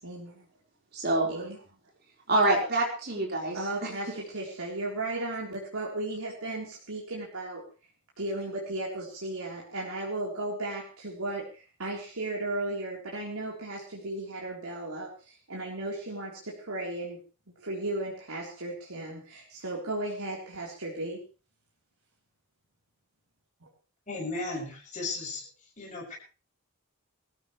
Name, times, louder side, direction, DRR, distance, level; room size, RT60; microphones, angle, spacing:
voice 1, 0.0-0.4 1.3-1.6 3.5-7.6 8.2-17.2 17.6-21.2, right 2 dB, 85° right, -3 dB, 3.9 m, -35 dB
voice 2, 0.9-1.4 2.3-3.9, right 2 dB, 45° right, -1 dB, 4.5 m, -26 dB
voice 3, 24.1-25.4 25.8-26.1, left 3 dB, 35° left, -5 dB, 7.1 m, -35 dB
23.5 x 14.5 x 3.3 m, 0.34 s
head